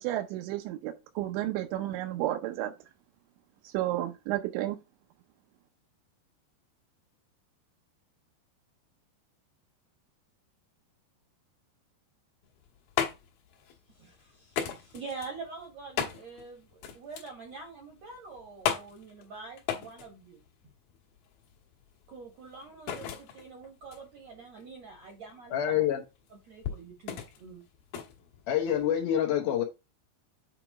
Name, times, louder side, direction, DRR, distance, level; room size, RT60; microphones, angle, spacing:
voice 1, 0.0-2.7 3.6-4.8, right 14 dB, 90° right, 3.1 m, -32 dB
sound 1, 12.4-29.0, left 9 dB, 65° left, 2.5 m, -38 dB
voice 2, 13.6-20.4 22.1-25.8 26.5-27.6, right 4 dB, 65° right, 1.7 m, -45 dB
voice 3, 25.5-26.0 28.5-29.6, left 10 dB, 90° left, 1.8 m, -26 dB
8.2 x 3.1 x 4.9 m
omnidirectional pair, 5.1 m